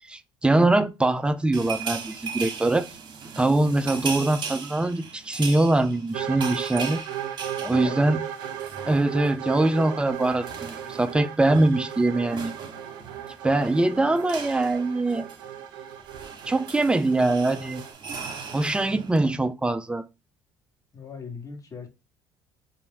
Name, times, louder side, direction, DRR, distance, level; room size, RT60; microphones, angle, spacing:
voice 1, 0.1-2.9 3.4-7.0 7.7-8.2 8.9-12.5 13.4-15.3 16.5-17.8 18.5-20.0, right 2 dB, 10° right, 0.5 m, -23 dB
sound 1, 1.5-9.4 9.7-9.9 10.1-19.2, right 5 dB, 45° right, 1.2 m, -38 dB
sound 2, 6.1-17.9, right 10 dB, 85° right, 0.6 m, -36 dB
voice 2, 7.6-8.2 18.8-19.0 20.9-21.9, left 5 dB, 30° left, 1.4 m, -39 dB
4.3 x 2.7 x 3.5 m
hypercardioid pair, 70°, 11 cm